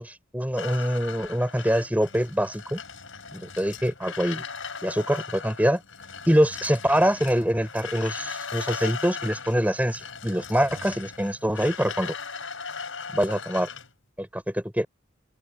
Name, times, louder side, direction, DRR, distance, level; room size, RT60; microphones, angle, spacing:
voice 1, 0.0-2.8 3.3-4.4 4.8-5.8 6.3-12.1 13.1-13.7 14.2-14.9, equal, 10° right, 6.1 m, -24 dB
sound 1, 0.6-13.9, left 5 dB, 75° left, 4.7 m, -38 dB
open air
head